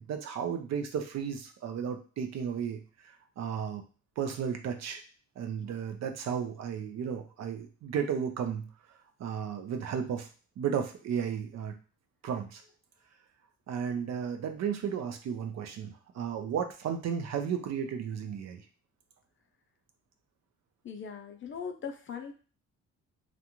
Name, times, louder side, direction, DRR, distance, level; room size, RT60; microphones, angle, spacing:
voice 1, 0.0-3.8 4.2-5.0 5.4-8.7 9.2-10.3 10.6-11.7 12.2-12.6 13.7-18.6, right 7 dB, 60° right, 6 dB, 0.5 m, -34 dB
voice 2, 20.8-22.3, left 6 dB, 40° left, 5 dB, 0.5 m, -39 dB
2.5 x 2.1 x 2.9 m, 0.37 s
cardioid pair, 90°, 30 cm